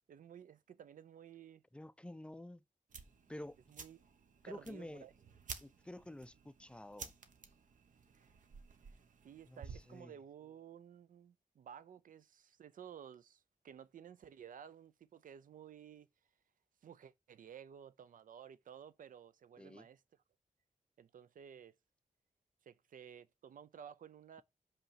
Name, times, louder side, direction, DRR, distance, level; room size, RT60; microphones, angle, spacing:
voice 1, 0.1-1.6 3.7-4.0 4.5-5.1 9.2-16.1 16.8-20.0 21.0-21.8 22.6-24.4, right 8 dB, 85° right, 0.5 m, -54 dB
voice 2, 1.7-2.6 3.3-3.6 4.4-5.1 5.6-7.1 9.5-10.1 19.6-19.9, left 1 dB, 10° left, 0.3 m, -50 dB
sound 1, 2.9-10.0, right 5 dB, 70° right, 1.1 m, -53 dB
5.8 x 5.5 x 5.6 m
wide cardioid pair, 160°, 13 cm